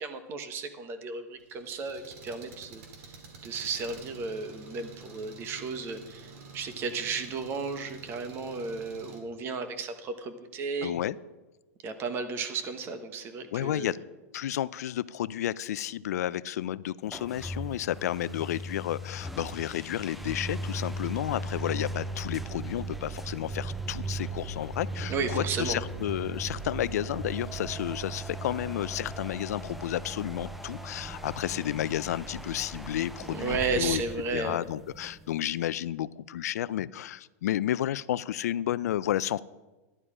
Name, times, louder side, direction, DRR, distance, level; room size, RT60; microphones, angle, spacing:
voice 1, 0.0-3.2 3.4-10.9 11.8-13.9 25.1-25.8 33.3-34.6, right 4 dB, 25° right, 9 dB, 1.1 m, -34 dB
Engine, 1.4-9.2, right 4 dB, 60° right, 2.8 m, -49 dB
voice 2, 10.8-11.2 13.5-14.0 14.3-34.0 34.3-39.4, left 12 dB, 80° left, 18 dB, 0.4 m, -31 dB
sound 1, 17.1-35.6, right 2 dB, ahead, 0.5 m, -38 dB
11.0 x 11.0 x 4.9 m, 1.1 s
supercardioid pair, 150°, 9 cm